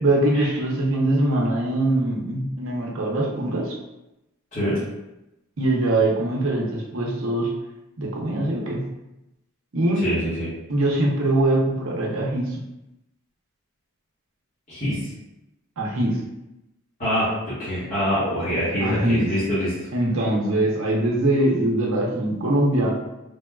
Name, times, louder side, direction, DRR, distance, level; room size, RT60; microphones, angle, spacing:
voice 1, 0.0-3.8 5.6-7.5 8.0-8.8 9.7-10.0 10.7-12.6 15.8-16.2 18.8-19.3 19.9-22.9, right 1 dB, 65° right, -2 dB, 0.6 m, -22 dB
voice 2, 10.0-10.5 14.7-15.0 17.0-19.9, equal, 35° left, -13 dB, 1.1 m, -25 dB
3.3 x 2.2 x 2.3 m, 0.94 s
head